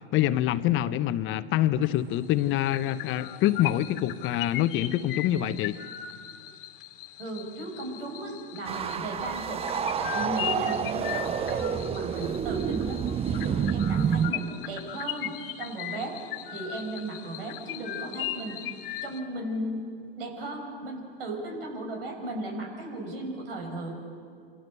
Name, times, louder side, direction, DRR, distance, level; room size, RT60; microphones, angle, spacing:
voice 1, 0.1-5.7, left 13 dB, 40° left, 12 dB, 1.1 m, -25 dB
sound 1, 1.8-2.1 2.4-19.2, left 13 dB, 65° left, 1.9 m, -38 dB
voice 2, 7.2-9.6 10.0-15.3 15.6-16.2 16.5-18.6 19.0-19.8 20.2-23.9, right 1 dB, 75° right, 2 dB, 7.7 m, -35 dB
sound 2, 8.7-14.3, right 8 dB, 20° right, 0.6 m, -28 dB
28.0 x 26.0 x 7.0 m, 2.3 s
hypercardioid pair, 95°, 29 cm